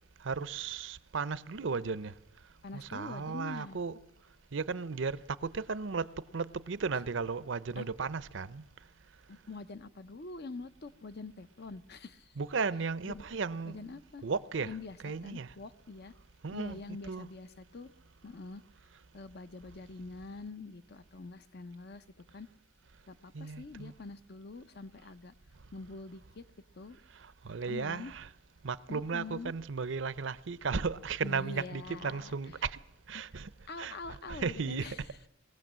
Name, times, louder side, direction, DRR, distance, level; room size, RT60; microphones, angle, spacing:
voice 1, 0.2-2.1 2.7-4.0 4.5-8.6 12.4-14.7 15.0-15.5 16.4-17.3 23.3-23.9 27.4-28.3 28.6-32.8 33.1-33.5 33.8-35.1, right 5 dB, 65° right, 0.6 m, -35 dB
voice 2, 2.6-3.8 7.8-7.9 9.3-12.4 13.0-13.2 13.7-14.2 14.6-16.1 16.5-17.9 18.2-18.6 19.1-22.0 22.3-22.5 23.1-25.3 25.7-26.5 26.7-27.0 27.6-28.1 28.9-29.5 31.2-32.3 33.1-33.4 33.7-35.0, left 3 dB, 55° left, 0.8 m, -45 dB
21.5 x 17.0 x 7.5 m
head